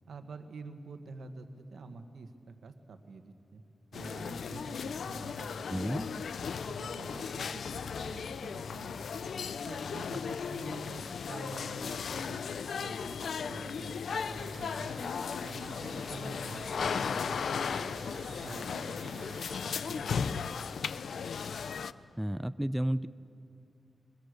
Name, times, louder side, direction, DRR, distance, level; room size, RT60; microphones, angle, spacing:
voice 1, 0.1-3.6 3.9-6.2 6.6-9.3 9.7-12.4 12.8-15.1 15.4-18.1 18.4-20.7, right 4 dB, 85° right, 7 dB, 1.5 m, -48 dB
sound 1, 3.9-21.9, left 6 dB, 80° left, 0.6 m, -36 dB
voice 2, 5.7-6.1 22.2-23.1, right 1 dB, 5° right, 14 dB, 0.5 m, -32 dB
sound 2, 14.1-19.8, right 4 dB, 60° right, 1.7 m, -50 dB
25.5 x 23.0 x 6.6 m, 2.5 s
cardioid pair, 75°, 0 cm